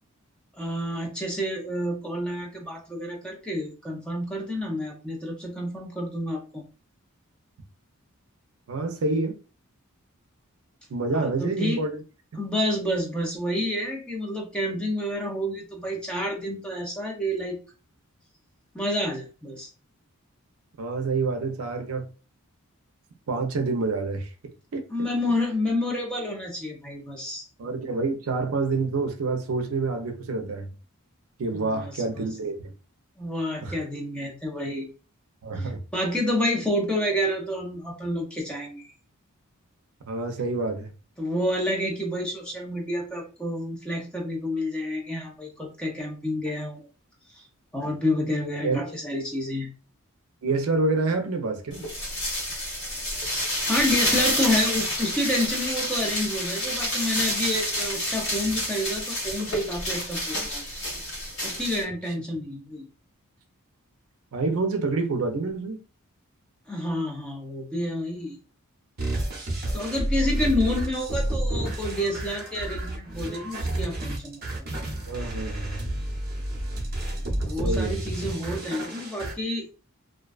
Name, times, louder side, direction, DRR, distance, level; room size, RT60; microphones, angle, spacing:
voice 1, 0.6-6.6 11.1-11.8 12.4-17.6 18.7-19.7 24.9-27.5 31.5-32.3 33.2-34.9 35.6-38.9 41.2-46.8 47.3-47.4 47.7-49.7 53.6-60.8 61.4-62.9 66.7-68.4 69.7-74.4 77.4-79.7, left 1 dB, 5° left, 0.5 m, -29 dB
voice 2, 8.7-9.4 10.9-12.0 20.8-22.1 23.3-24.3 24.7-24.8 27.6-30.7 31.4-32.7 33.6-33.7 35.4-35.8 40.1-40.9 48.6-48.9 50.4-51.8 64.3-65.8 75.1-75.8 77.6-78.0, right 3 dB, 75° right, 0.5 m, -27 dB
sound 1, 51.7-61.8, left 1 dB, 55° left, 1.2 m, -29 dB
sound 2, 69.0-79.3, right 1 dB, 45° right, 0.7 m, -30 dB
2.5 x 2.2 x 2.3 m
head